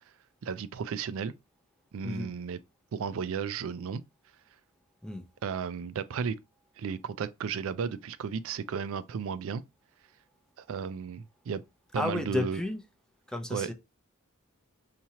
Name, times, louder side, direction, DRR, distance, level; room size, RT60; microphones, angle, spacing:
voice 1, 0.4-1.3 1.9-2.6 2.9-4.0 5.4-6.3 6.8-9.6 10.6-11.6 11.9-12.6 13.5-13.7, right 6 dB, 65° right, 0.4 m, -34 dB
voice 2, 12.0-12.8 13.3-13.7, left 1 dB, 5° left, 0.5 m, -32 dB
5.8 x 2.8 x 2.8 m
head